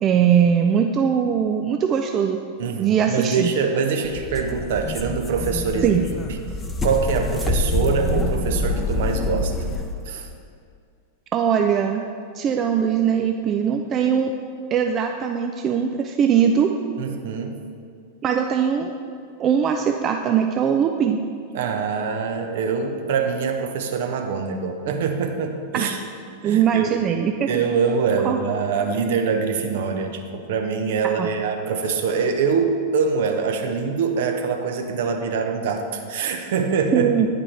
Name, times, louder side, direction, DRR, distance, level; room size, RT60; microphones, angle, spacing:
voice 1, 0.0-2.4 2.7-3.5 5.8-6.0 11.3-12.0 12.3-14.3 14.7-16.7 18.2-18.9 19.4-21.2 25.7-25.9 26.4-27.6 28.2-28.4 31.2-31.3 36.9-37.3, right 8 dB, 30° right, 4 dB, 0.4 m, -20 dB
voice 2, 2.6-6.0 6.8-9.5 10.1-10.3 17.0-17.6 21.5-26.0 26.4-27.1 27.5-37.1, right 5 dB, 55° right, 5 dB, 0.7 m, -24 dB
sound 1, 4.0-10.0, left 2 dB, 15° left, 0.6 m, -26 dB
9.6 x 5.2 x 4.3 m, 2.3 s
figure-of-eight pair, 90°, 0 cm